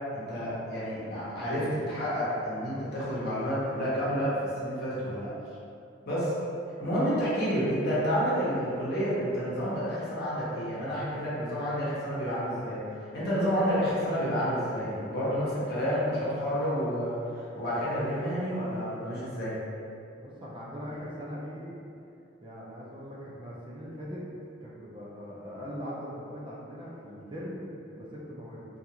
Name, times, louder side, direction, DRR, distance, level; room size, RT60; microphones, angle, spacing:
voice 1, 0.1-5.3 6.0-6.3 6.8-19.5, equal, 55° left, -9 dB, 0.9 m, -30 dB
voice 2, 20.2-21.8 22.4-24.2 24.6-28.7, equal, 25° right, -5 dB, 0.4 m, -40 dB
2.4 x 2.4 x 2.8 m, 2.6 s
head